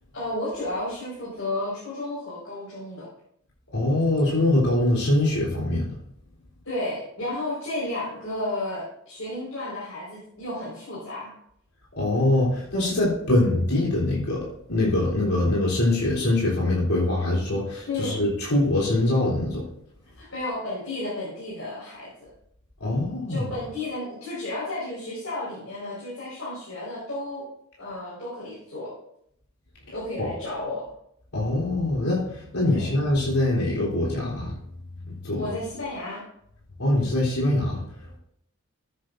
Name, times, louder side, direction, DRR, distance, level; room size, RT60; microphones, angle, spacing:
voice 1, 0.1-3.1 6.6-11.3 17.9-18.2 20.2-22.3 23.3-27.5 27.8-28.9 29.9-30.9 32.7-32.9 35.4-36.2, left 1 dB, 65° left, -9 dB, 4.8 m, -32 dB
voice 2, 3.7-5.9 12.0-19.6 22.8-23.5 31.3-34.5 35.2-35.4 36.8-37.8, left 1 dB, 80° left, -6 dB, 3.6 m, -23 dB
14.0 x 9.6 x 2.6 m, 0.73 s
head